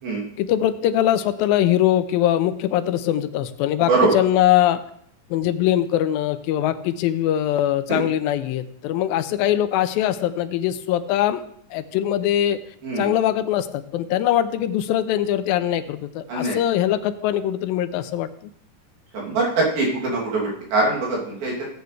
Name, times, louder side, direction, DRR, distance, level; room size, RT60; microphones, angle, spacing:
voice 1, 0.4-4.8 5.3-11.4 11.7-12.6 13.0-18.3, left 12 dB, 85° left, 11 dB, 2.4 m, -22 dB
voice 2, 3.9-4.2 7.9-8.0 12.8-13.1 16.3-16.6 19.1-21.7, right 3 dB, 80° right, -4 dB, 4.7 m, -22 dB
17.0 x 8.1 x 3.3 m, 0.66 s
omnidirectional pair, 4.1 m